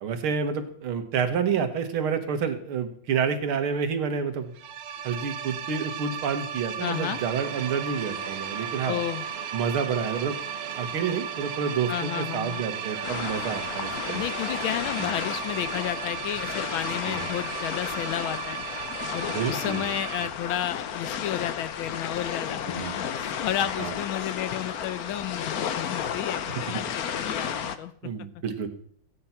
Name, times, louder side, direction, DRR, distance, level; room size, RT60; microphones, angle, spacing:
voice 1, 0.0-4.5 5.0-9.0 9.5-10.4 10.7-14.2 15.0-15.1 17.1-17.3 19.3-19.9 22.7-23.0 23.8-23.9 28.0-28.7, right 6 dB, 80° right, 8 dB, 2.3 m, -29 dB
sound 1, 4.5-20.3, right 8 dB, 65° right, 1.5 m, -35 dB
voice 2, 6.8-7.2 8.9-9.2 11.9-12.6 14.1-18.6 19.1-27.9, left 11 dB, 75° left, 14 dB, 1.5 m, -32 dB
sound 2, 6.9-15.1, right 4 dB, 35° right, 1.3 m, -42 dB
sound 3, 13.0-27.8, left 8 dB, 60° left, 1.1 m, -33 dB
15.0 x 9.5 x 5.8 m, 0.63 s
omnidirectional pair, 2.3 m